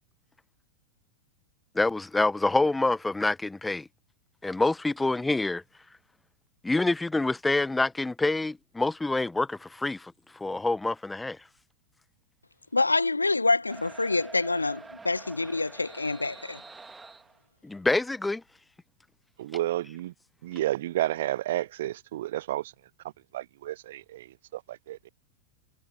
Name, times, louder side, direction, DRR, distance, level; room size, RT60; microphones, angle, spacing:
voice 1, 1.7-3.9 4.4-5.6 6.6-11.4 17.6-18.4, left 2 dB, 5° left, 1.1 m, -27 dB
voice 2, 12.7-16.6, left 3 dB, 80° left, 1.5 m, -26 dB
sound 1, 13.7-17.4, right 4 dB, 10° right, 2.7 m, -46 dB
voice 3, 19.4-20.1 20.4-22.7 23.3-25.1, right 14 dB, 55° right, 0.6 m, -31 dB
figure-of-eight pair, 90°, 0 cm